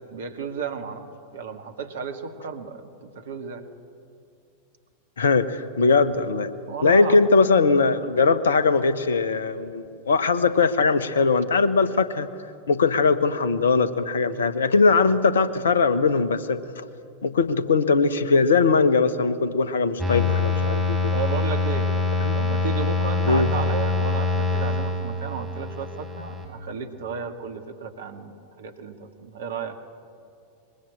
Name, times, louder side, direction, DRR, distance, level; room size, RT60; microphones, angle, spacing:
voice 1, 0.1-1.0 1.3-3.7 6.7-7.3 21.1-22.0 22.3-29.8, right 5 dB, 60° right, 6 dB, 2.1 m, -33 dB
voice 2, 5.2-6.5 6.8-12.3 12.7-16.6 17.2-21.1 22.2-22.4 23.3-23.5, left 4 dB, 65° left, 13 dB, 1.2 m, -20 dB
sound 1, 20.0-26.5, left 3 dB, 5° right, 6.4 m, -24 dB
23.5 x 22.0 x 8.7 m, 2.5 s
figure-of-eight pair, 90°, 0 cm